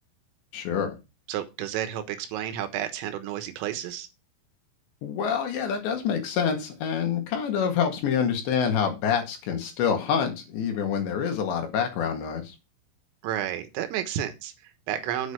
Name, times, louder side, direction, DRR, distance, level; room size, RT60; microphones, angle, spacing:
voice 1, 0.5-1.0 5.0-12.6, left 7 dB, 65° left, 3.9 m, -27 dB
voice 2, 1.3-4.1 13.2-15.3, right 11 dB, 80° right, 3.7 m, -31 dB
8.8 x 6.5 x 5.2 m
omnidirectional pair, 6.0 m